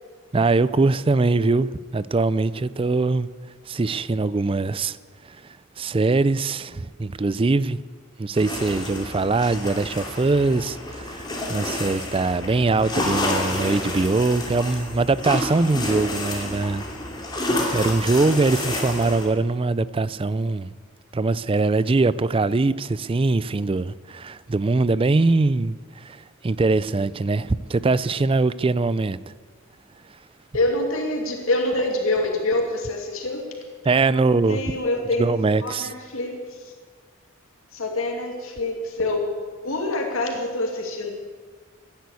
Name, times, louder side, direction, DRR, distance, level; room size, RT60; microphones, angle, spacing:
voice 1, 0.3-3.3 3.7-5.0 5.8-7.8 8.2-16.8 17.7-20.7 21.1-29.2 33.8-34.6 35.2-35.9, right 3 dB, 25° right, 0.4 m, -22 dB
sound 1, 8.3-19.3, left 1 dB, 20° left, 2.7 m, -29 dB
voice 2, 30.5-33.5 34.1-35.3 35.6-36.7 37.7-39.3 39.6-41.1, left 2 dB, 85° left, 2.4 m, -26 dB
15.0 x 10.5 x 8.4 m
head